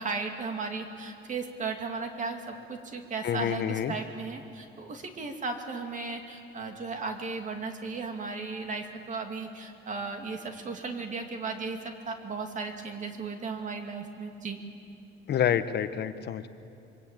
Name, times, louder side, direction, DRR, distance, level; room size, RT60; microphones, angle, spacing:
voice 1, 0.0-14.6, right 4 dB, 40° right, 4 dB, 2.5 m, -36 dB
voice 2, 3.2-3.9 15.3-16.5, left 9 dB, 55° left, 11 dB, 1.0 m, -28 dB
26.5 x 23.5 x 8.9 m, 2.6 s
cardioid pair, 175°, 21 cm